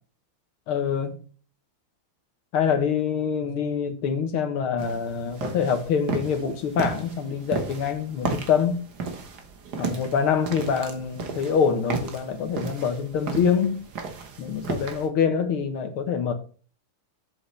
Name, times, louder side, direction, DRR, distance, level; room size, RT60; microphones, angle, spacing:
voice 1, 0.7-1.2 2.5-8.8 9.8-13.8 14.4-16.3, left 7 dB, 80° left, 2.2 m, -25 dB
sound 1, 4.8-15.1, right 4 dB, 55° right, 1.7 m, -34 dB
8.2 x 7.3 x 3.2 m
omnidirectional pair, 2.3 m